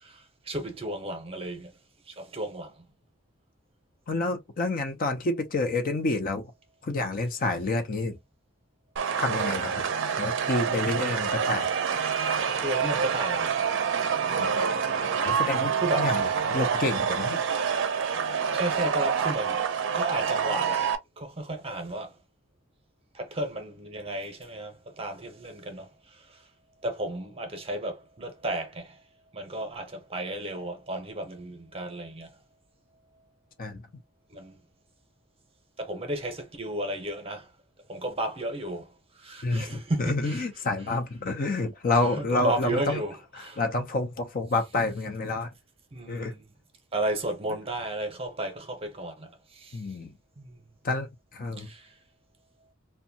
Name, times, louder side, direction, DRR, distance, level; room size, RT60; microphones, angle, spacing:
voice 1, 0.0-1.7 2.1-2.9 12.6-13.6 15.7-16.1 18.5-19.6 19.9-20.9 21.2-22.1 23.1-26.4 26.8-29.0 29.3-32.4 34.3-34.6 35.8-37.5 37.9-40.5 42.2-43.1 43.4-43.6 45.9-46.4 46.9-49.8 50.4-50.6 51.6-51.9, right 1 dB, 30° right, 0.7 m, -33 dB
voice 2, 4.1-6.5 6.8-8.2 9.2-9.9 10.2-11.7 14.3-14.5 15.2-17.4 33.6-33.8 39.4-43.0 43.3-45.5 46.1-46.3 49.7-50.1 50.8-51.7, left 2 dB, 45° left, 0.5 m, -29 dB
sound 1, 9.0-21.0, right 6 dB, 65° right, 0.5 m, -27 dB
2.6 x 2.2 x 2.6 m
head